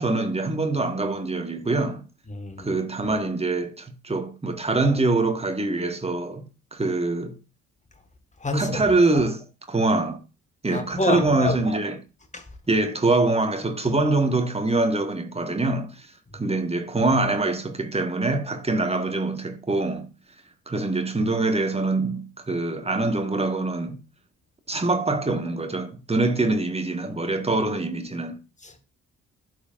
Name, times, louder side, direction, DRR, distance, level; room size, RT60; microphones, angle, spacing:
voice 1, 0.0-2.0 2.6-6.4 6.7-7.3 8.5-10.2 10.6-11.9 12.7-16.1 16.3-20.1 20.7-24.0 24.7-28.4, right 2 dB, 15° right, 1.5 m, -24 dB
voice 2, 2.3-2.7 8.4-8.8 10.7-11.6 12.3-12.4 28.6-28.8, left 2 dB, 15° left, 1.7 m, -27 dB
11.5 x 4.7 x 2.6 m
figure-of-eight pair, 40°, 42 cm